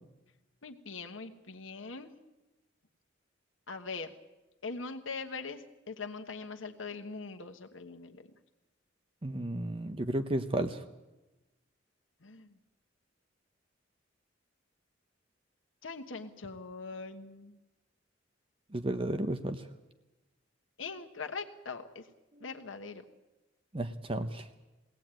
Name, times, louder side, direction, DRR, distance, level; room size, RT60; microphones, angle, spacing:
voice 1, 0.6-2.1 3.7-4.1 4.6-8.3 12.2-12.6 15.8-17.6 20.8-22.1 22.4-23.0, left 4 dB, 90° left, 5 dB, 1.3 m, -42 dB
voice 2, 9.2-10.8 18.7-19.7 22.4-22.5 23.7-24.5, right 1 dB, 30° right, 9 dB, 0.8 m, -33 dB
22.5 x 17.5 x 9.0 m, 1.1 s
head